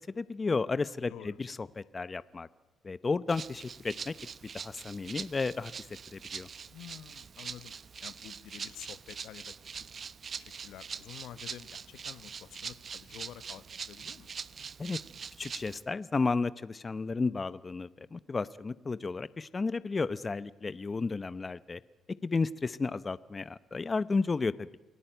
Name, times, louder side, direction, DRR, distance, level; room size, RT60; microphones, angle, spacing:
voice 1, 0.1-2.5 2.8-4.1 4.5-5.7 6.1-6.5 14.8-15.0 15.4-21.8 22.2-24.8, left 4 dB, 30° left, 17 dB, 0.8 m, -33 dB
Rattle (instrument), 3.3-15.8, right 6 dB, 45° right, 0.8 m, -43 dB
voice 2, 6.6-7.7 8.0-9.9 10.3-14.3, left 11 dB, 85° left, 14 dB, 1.1 m, -49 dB
28.0 x 18.0 x 9.1 m, 1.1 s
cardioid pair, 90°, 0 cm